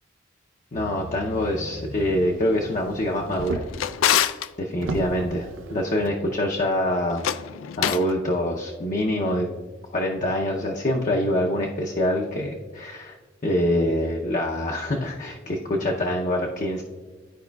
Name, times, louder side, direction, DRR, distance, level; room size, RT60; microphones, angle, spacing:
voice 1, 0.7-3.6 4.6-7.3 7.8-9.5 9.9-13.2 13.4-16.8, left 1 dB, 40° left, 0 dB, 0.6 m, -25 dB
Motor vehicle (road), 0.8-3.9 4.4-4.5 4.8-6.2 7.1-7.2, right 2 dB, 90° right, 0.5 m, -36 dB
Drawer open or close, 3.3-4.5 7.1-8.1, left 10 dB, 85° left, 0.3 m, -25 dB
13.0 x 4.7 x 2.3 m, 1.4 s
head